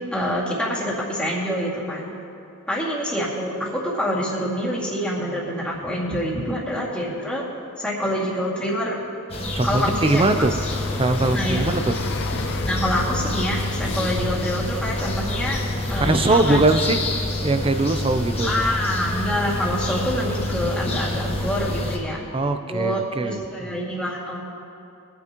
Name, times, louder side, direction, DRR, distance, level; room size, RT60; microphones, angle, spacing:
voice 1, 0.0-2.1 2.7-7.4 7.8-9.0 9.6-10.5 11.3-11.7 12.4-15.6 15.9-16.6 18.4-22.3 22.7-24.4, equal, 5° left, -6 dB, 2.2 m, -26 dB
sound 1, 9.3-22.0, left 1 dB, 30° left, 1.3 m, -27 dB
voice 2, 9.5-10.5 11.0-12.0 16.0-17.0 17.4-18.7 22.3-23.8, right 2 dB, 25° right, 8 dB, 0.5 m, -21 dB
sound 2, 10.7-16.3, left 4 dB, 55° left, 0.5 m, -33 dB
23.0 x 9.5 x 3.0 m, 2.6 s
head